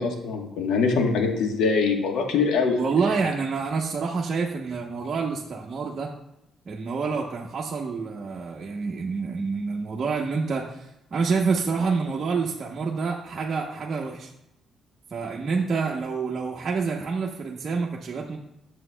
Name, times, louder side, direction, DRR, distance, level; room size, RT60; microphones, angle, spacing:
voice 1, 0.0-2.8, left 4 dB, 85° left, 3 dB, 1.1 m, -23 dB
voice 2, 2.8-6.1 6.7-14.3 15.1-18.4, right 4 dB, 45° right, -2 dB, 0.8 m, -27 dB
9.2 x 7.0 x 2.2 m, 0.83 s
cardioid pair, 90°, 0 cm